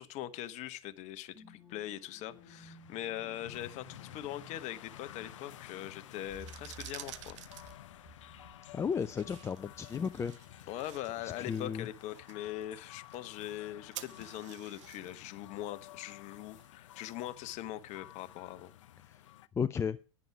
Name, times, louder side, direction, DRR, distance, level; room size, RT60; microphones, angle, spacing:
voice 1, 0.0-7.4 10.7-18.7, left 13 dB, 45° left, 14 dB, 1.0 m, -42 dB
sound 1, 1.3-11.8 12.2-12.3, right 1 dB, ahead, 4.1 m, -57 dB
sound 2, 1.9-19.5, left 13 dB, 65° left, 0.5 m, -53 dB
sound 3, 6.2-17.1, right 13 dB, 65° right, 0.9 m, -53 dB
voice 2, 8.7-10.7 11.4-11.9 19.6-20.0, left 6 dB, 15° left, 14 dB, 0.4 m, -34 dB
10.5 x 9.6 x 4.4 m, 0.33 s
figure-of-eight pair, 90°, 17 cm